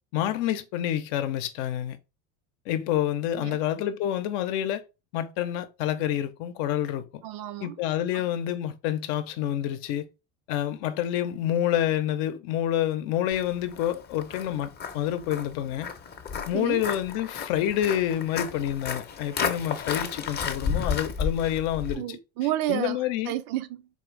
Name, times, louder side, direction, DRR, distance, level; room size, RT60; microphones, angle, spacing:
voice 1, 0.1-2.0 2.7-4.8 5.1-7.2 7.6-10.1 10.5-15.9 16.5-22.2 22.7-23.3, left 11 dB, 70° left, 0.7 m, -28 dB
voice 2, 7.2-7.7 8.1-8.3 16.5-16.8 21.9-23.9, right 14 dB, 60° right, 0.5 m, -31 dB
Walk footsteps, 13.3-22.0, left 6 dB, 25° left, 0.6 m, -33 dB
4.3 x 2.5 x 3.1 m
supercardioid pair, 115°, 38 cm